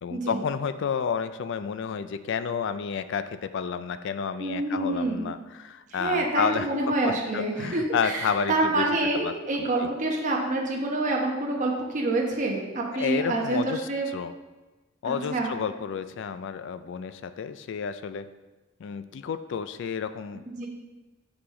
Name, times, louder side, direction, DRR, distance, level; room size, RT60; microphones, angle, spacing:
voice 1, 0.0-8.8 9.2-9.9 12.9-14.3 15.0-18.3 18.8-20.6, left 6 dB, 65° left, 12 dB, 0.3 m, -31 dB
voice 2, 4.4-5.2 5.9-14.1 15.0-15.5 20.5-20.7, right 2 dB, 40° right, -2 dB, 1.0 m, -27 dB
6.8 x 4.8 x 3.7 m, 1.2 s
head